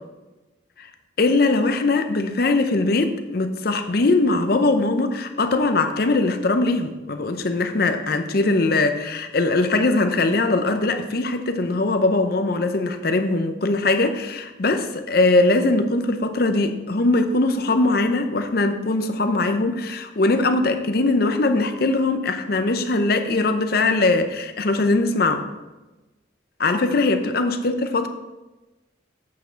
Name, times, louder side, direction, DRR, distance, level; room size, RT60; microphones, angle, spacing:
voice 1, 1.2-25.5 26.6-28.1, left 2 dB, 50° left, 8 dB, 0.6 m, -21 dB
8.3 x 4.8 x 5.1 m, 1.1 s
head